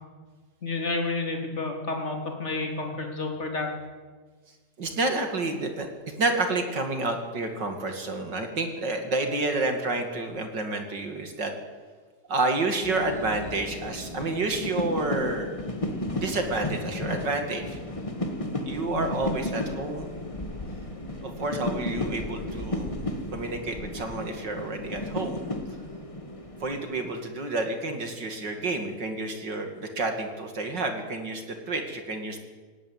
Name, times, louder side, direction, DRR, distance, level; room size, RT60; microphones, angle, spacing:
voice 1, 0.6-3.7 18.9-19.1, left 3 dB, 20° left, 2 dB, 3.4 m, -30 dB
voice 2, 4.8-5.9 6.2-11.5 12.3-15.5 16.2-17.8 18.7-20.1 21.2-22.9 23.3-25.4 26.6-32.4, right 2 dB, 35° right, 5 dB, 2.6 m, -29 dB
sound 1, 12.8-27.2, left 1 dB, 65° left, 0.3 m, -34 dB
18.0 x 18.0 x 9.0 m, 1.4 s
omnidirectional pair, 4.0 m